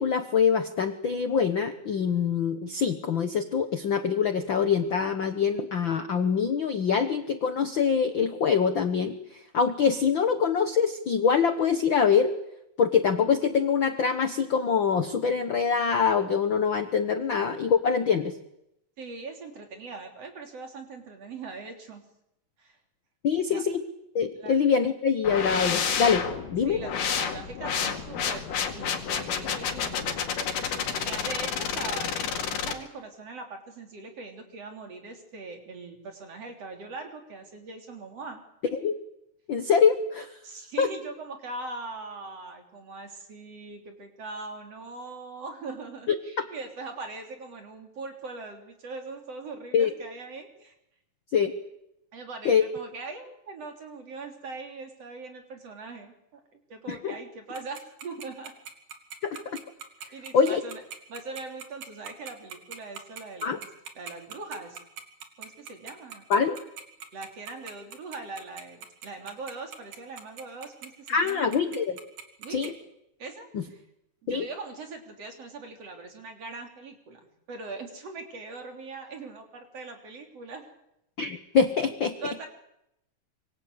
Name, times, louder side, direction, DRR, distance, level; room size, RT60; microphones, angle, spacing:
voice 1, 0.0-12.3 12.8-18.4 23.2-23.8 24.1-26.2 26.5-26.8 38.8-39.0 39.5-40.3 40.8-40.9 49.7-49.9 51.3-51.5 52.4-52.6 56.9-57.1 59.2-59.6 60.3-60.6 63.4-63.6 66.3-66.6 71.1-72.0 72.5-72.7 73.5-73.6 74.3-74.4 81.2-82.1, left 6 dB, 55° left, 9 dB, 1.4 m, -24 dB
voice 2, 19.0-22.0 22.6-22.8 23.5-23.6 24.4-24.6 26.7-38.4 40.4-50.8 52.1-58.5 60.1-60.8 61.1-63.7 64.0-64.8 65.4-66.2 67.1-71.6 72.4-72.7 73.2-73.8 74.2-77.2 77.5-80.7 82.2-82.5, right 3 dB, 50° right, 4 dB, 4.3 m, -41 dB
sound 1, 25.2-32.7, left 7 dB, 85° left, 3.8 m, -30 dB
Tick-tock, 57.5-72.7, right 7 dB, 65° right, 3.7 m, -41 dB
26.0 x 23.5 x 8.2 m, 0.83 s
omnidirectional pair, 3.7 m